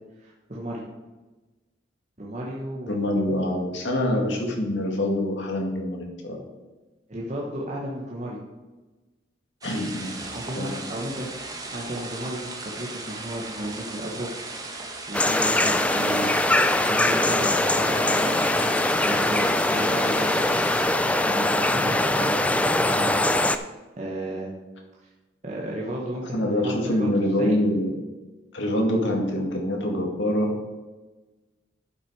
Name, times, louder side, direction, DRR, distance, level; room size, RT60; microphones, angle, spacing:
voice 1, 0.2-0.8 2.2-3.3 7.1-8.4 9.7-9.8 10.2-14.7 15.1-16.3 16.9-18.8 19.0-20.3 21.0-23.2 24.0-24.5 25.4-27.1 27.4-27.5, right 1 dB, 40° right, -4 dB, 1.3 m, -34 dB
voice 2, 2.9-6.4 9.6-10.2 10.6-10.8 26.3-27.9 28.5-30.5, left 1 dB, 80° left, 1 dB, 2.0 m, -25 dB
sound 1, 9.6-21.0, right 2 dB, 20° right, 1.2 m, -37 dB
sound 2, 15.1-23.6, left 1 dB, 5° left, 0.3 m, -22 dB
11.0 x 5.9 x 4.8 m, 1.2 s
head